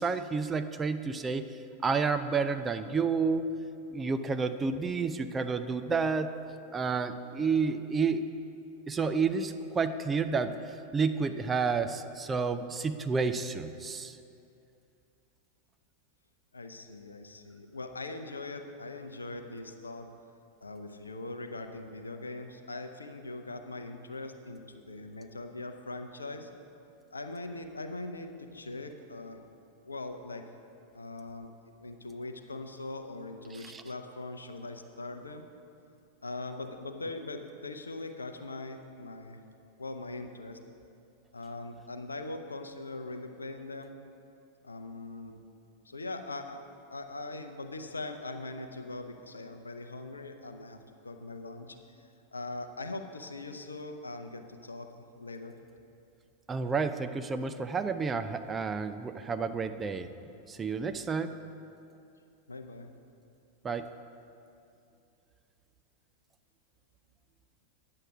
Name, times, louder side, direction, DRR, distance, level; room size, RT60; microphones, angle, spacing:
voice 1, 0.0-1.5 1.8-3.5 3.9-6.3 6.7-8.2 8.9-10.6 10.9-14.2 33.5-33.8 56.5-60.1 60.5-61.3 63.6-63.9, right 5 dB, 20° right, 9 dB, 0.4 m, -30 dB
voice 2, 16.5-20.1 20.6-26.5 27.1-29.4 29.8-30.4 30.9-31.5 31.8-35.4 36.2-39.4 39.8-40.6 41.3-44.0 44.6-45.4 45.8-46.6 46.9-50.8 51.0-54.9 55.1-55.5 62.5-62.9, left 2 dB, 75° left, 7 dB, 0.6 m, -41 dB
9.7 x 7.7 x 6.1 m, 2.6 s
figure-of-eight pair, 90°, 0 cm